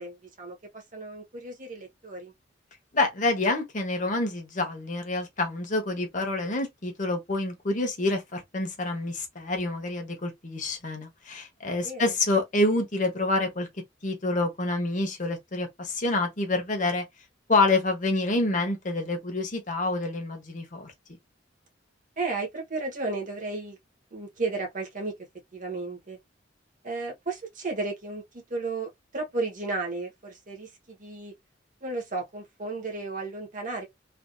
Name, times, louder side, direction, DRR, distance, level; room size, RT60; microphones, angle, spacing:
voice 1, 0.0-2.3 11.8-12.1 22.2-23.8 24.1-25.1 25.5-26.2 26.8-28.2 28.5-31.3 31.8-33.8, right 3 dB, 45° right, 1.2 m, -33 dB
voice 2, 2.9-13.7 14.0-17.0 17.5-20.9, left 2 dB, 40° left, 1.0 m, -27 dB
3.4 x 2.4 x 2.6 m
head